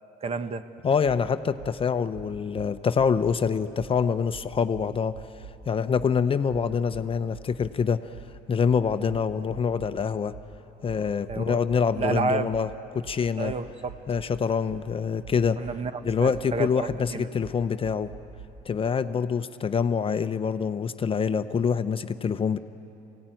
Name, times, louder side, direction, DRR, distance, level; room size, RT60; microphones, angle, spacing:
voice 1, 0.2-0.6 11.3-11.6 11.9-12.5 13.4-14.0 15.6-17.3, right 4 dB, 35° right, 11 dB, 1.0 m, -30 dB
voice 2, 0.8-5.2 5.7-8.1 8.5-10.3 10.8-13.5 14.1-15.6 16.0-18.1 18.7-22.6, left 6 dB, 35° left, 10 dB, 0.7 m, -25 dB
sound 1, 1.6-1.8 2.1-3.4 3.8-3.9 4.3-5.6 5.9-6.1 6.5-7.8 8.1-12.1 12.5-18.5, right 6 dB, 80° right, 3.5 m, -45 dB
23.5 x 17.5 x 9.1 m, 2.8 s
cardioid pair, 110°, 17 cm